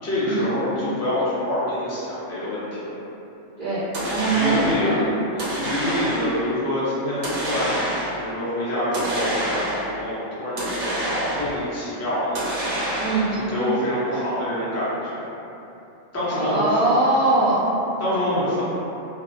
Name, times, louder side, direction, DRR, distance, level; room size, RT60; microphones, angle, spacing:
voice 1, 0.0-3.0 4.2-7.9 8.2-12.4 13.5-15.2 16.1-16.7 18.0-18.6, left 1 dB, 25° left, -10 dB, 0.3 m, -26 dB
voice 2, 3.6-5.2 13.0-13.3 16.3-17.7, right 2 dB, 45° right, -13 dB, 0.6 m, -22 dB
sound 1, 3.9-4.9 5.4-6.4 7.2-8.3 8.9-10.0 10.6-11.7 12.4-13.4, right 1 dB, 70° right, 0.9 m, -27 dB
2.7 x 2.0 x 2.5 m, 2.9 s
omnidirectional pair, 1.3 m